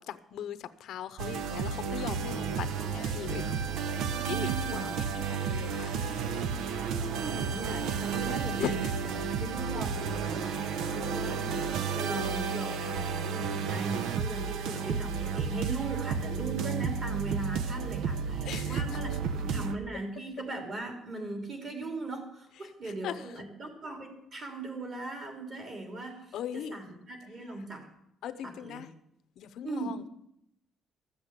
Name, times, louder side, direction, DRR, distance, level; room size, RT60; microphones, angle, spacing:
voice 1, 0.0-3.7 4.0-6.0 8.6-8.9 10.7-11.0 18.4-19.0 22.6-22.7 23.0-23.4 26.3-26.8 28.2-28.9 29.4-30.1, left 10 dB, 65° left, 13 dB, 0.7 m, -39 dB
sound 1, 1.2-19.8, right 6 dB, 80° right, 0.8 m, -32 dB
voice 2, 4.1-4.9 6.8-11.7 11.9-27.9 28.4-28.9 29.6-29.9, right 2 dB, 35° right, 4 dB, 2.9 m, -39 dB
14.0 x 7.9 x 8.1 m, 0.76 s
cardioid pair, 165°, 0 cm